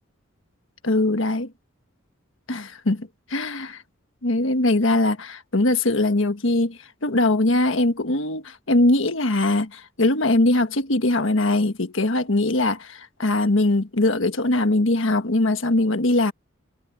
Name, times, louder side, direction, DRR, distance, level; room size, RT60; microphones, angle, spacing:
voice 1, 0.8-1.5 2.5-3.8 4.2-16.3, left 2 dB, 65° left, 1.5 m, -21 dB
head